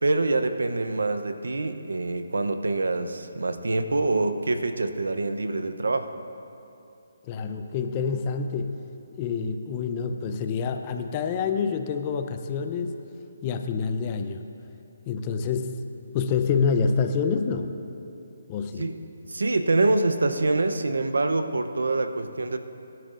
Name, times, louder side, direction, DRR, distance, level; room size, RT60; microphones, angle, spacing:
voice 1, 0.0-6.1 18.8-19.0 19.3-22.6, right 2 dB, 85° right, 8 dB, 0.8 m, -25 dB
voice 2, 7.3-8.8 9.2-13.0 13.4-14.4 15.1-15.8 16.1-17.7 18.5-18.9, left 5 dB, 25° left, 7 dB, 0.7 m, -27 dB
23.5 x 11.0 x 2.6 m, 2.8 s
hypercardioid pair, 155°, 0 cm